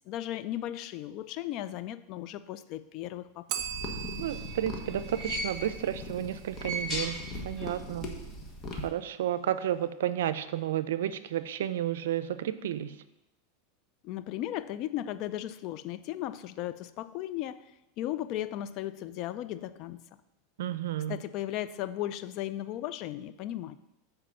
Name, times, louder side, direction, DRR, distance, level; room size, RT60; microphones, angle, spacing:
voice 1, 0.1-3.6 14.0-17.6 18.0-20.0 21.1-23.8, left 13 dB, 50° left, 14 dB, 0.4 m, -36 dB
Bell, 3.5-6.3, right 10 dB, 50° right, 0.7 m, -40 dB
sound 1, 3.6-8.9, left 1 dB, 30° left, 1.3 m, -40 dB
sound 2, 4.0-5.9 6.4-7.8 8.1-8.2 9.3-9.4, equal, ahead, 2.9 m, -38 dB
voice 2, 4.2-7.2 7.4-8.1 8.7-12.9 20.6-21.2, right 11 dB, 85° right, 14 dB, 0.5 m, -32 dB
7.5 x 4.8 x 5.6 m, 0.93 s
supercardioid pair, 140°, 0 cm